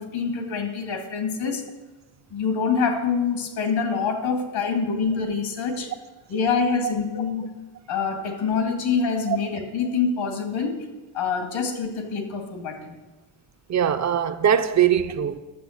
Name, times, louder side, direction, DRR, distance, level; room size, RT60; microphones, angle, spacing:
voice 1, 0.0-1.6 2.3-5.9 6.3-7.5 7.9-10.8 11.1-13.0, left 5 dB, 75° left, 2.2 m, -25 dB
voice 2, 13.7-15.4, right 9 dB, 35° right, 0.6 m, -21 dB
11.0 x 7.6 x 6.5 m
cardioid pair, 145°, 47 cm